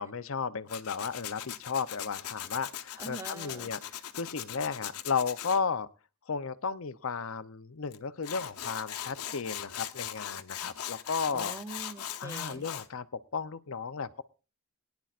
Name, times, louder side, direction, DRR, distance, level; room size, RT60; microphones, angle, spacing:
voice 1, 0.0-5.9 6.3-11.5 12.2-14.2, left 5 dB, 60° left, 13 dB, 0.7 m, -34 dB
Tools, 0.7-5.6 7.9-12.9, left 10 dB, 85° left, 1.0 m, -40 dB
voice 2, 3.0-3.7 11.3-12.6, right 3 dB, 15° right, 10 dB, 0.6 m, -43 dB
22.0 x 10.5 x 2.5 m, 0.33 s
head